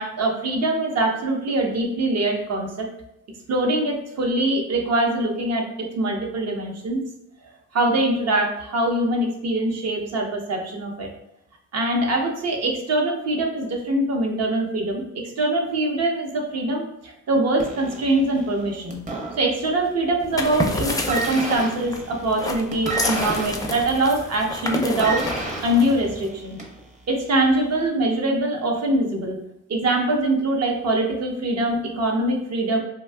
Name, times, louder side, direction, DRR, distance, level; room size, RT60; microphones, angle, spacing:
voice 1, 0.0-2.9 3.5-5.6 6.0-7.0 7.7-11.1 11.7-15.0 15.4-19.0 19.4-25.2 25.6-26.6 27.1-29.4 29.7-32.8, right 1 dB, 55° right, 1 dB, 0.8 m, -23 dB
sound 1, 17.6-19.9 20.2-20.6 20.9-26.8 27.7-27.8, right 3 dB, 25° right, 0.8 m, -32 dB
sound 2, 20.2-26.3, left 2 dB, 10° left, 0.4 m, -29 dB
2.7 x 2.2 x 3.3 m, 0.83 s
cardioid pair, 90°, 30 cm